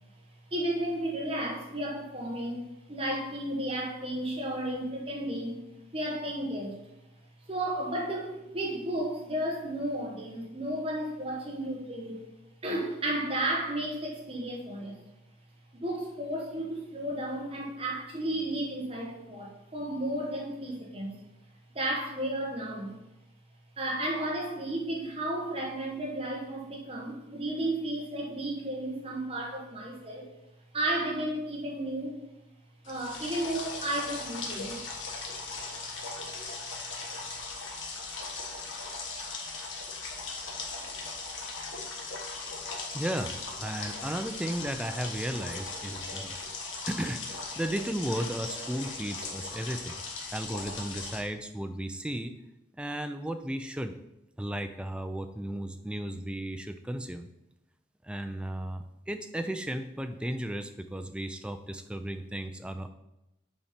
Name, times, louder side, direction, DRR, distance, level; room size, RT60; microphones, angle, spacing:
voice 1, 0.5-5.6 5.9-6.8 7.5-12.2 12.6-15.0 15.7-21.2 21.7-22.9 23.8-30.3 30.7-32.2 32.9-34.8, right 1 dB, 30° right, -1 dB, 1.2 m, -33 dB
sound 1, 32.8-51.2, left 3 dB, 80° left, 1.2 m, -38 dB
voice 2, 42.9-46.4 46.9-50.0 50.3-52.3 52.8-53.9 54.4-57.3 58.0-62.9, right 1 dB, 5° right, 8 dB, 0.3 m, -35 dB
7.2 x 4.2 x 5.1 m, 0.92 s
head